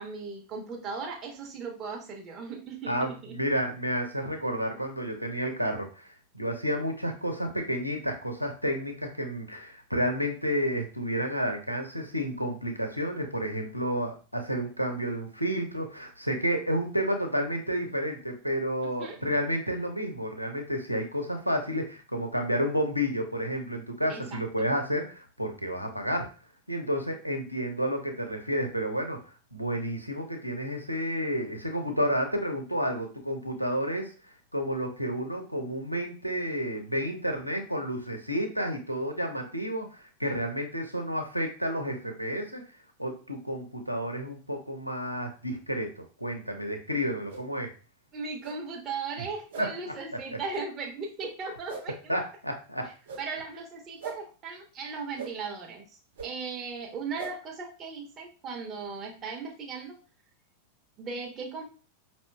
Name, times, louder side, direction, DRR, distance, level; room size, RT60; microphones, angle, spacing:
voice 1, 0.0-3.3 19.0-19.2 24.1-24.2 48.1-52.1 53.2-56.0 56.2-59.9 61.0-61.6, right 4 dB, 30° right, 1 dB, 1.1 m, -37 dB
voice 2, 2.9-26.3 26.7-42.6 43.0-47.7 49.6-50.2 52.1-52.9, equal, 90° left, 4 dB, 0.7 m, -31 dB
sound 1, 47.3-47.4 48.4-48.5 49.5-49.6 50.5-50.6 51.7-51.8 53.0-53.2 54.0-54.2 55.1-55.3 56.1-56.3 57.2-57.3, right 5 dB, 60° right, 1.4 m, -39 dB
5.2 x 2.8 x 2.3 m, 0.37 s
figure-of-eight pair, 90°, 0 cm